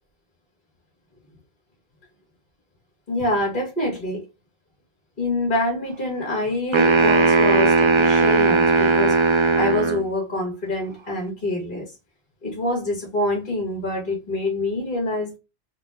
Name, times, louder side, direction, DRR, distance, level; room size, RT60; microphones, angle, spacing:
voice 1, 3.1-4.2 5.2-9.2 9.6-11.9 12.4-15.4, left 2 dB, 50° left, 1.9 m, -26 dB
sound 1, 6.7-10.1, right 4 dB, 55° right, 0.3 m, -17 dB
4.2 x 2.2 x 3.3 m
omnidirectional pair, 1.1 m